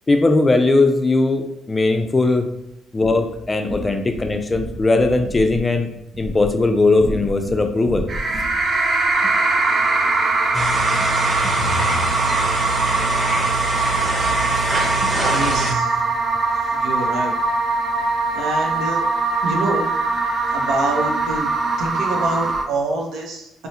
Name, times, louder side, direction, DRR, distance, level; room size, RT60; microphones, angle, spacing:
voice 1, 0.1-2.5 2.9-5.9 6.2-8.1 11.3-11.5 15.0-15.1, left 2 dB, 25° left, 6 dB, 0.4 m, -19 dB
sound 1, 3.3-8.7, equal, 60° right, 1.1 m, -32 dB
sound 2, 8.1-22.6, right 3 dB, 45° right, 0.5 m, -21 dB
sound 3, 10.5-15.7, right 1 dB, 20° right, 0.9 m, -24 dB
voice 2, 15.3-16.0 16.7-17.3 18.3-19.0 19.4-19.9 20.5-21.5 21.8-23.7, right 2 dB, 80° right, 1 dB, 0.7 m, -26 dB
4.6 x 2.0 x 2.8 m, 0.85 s
cardioid pair, 95°, 0 cm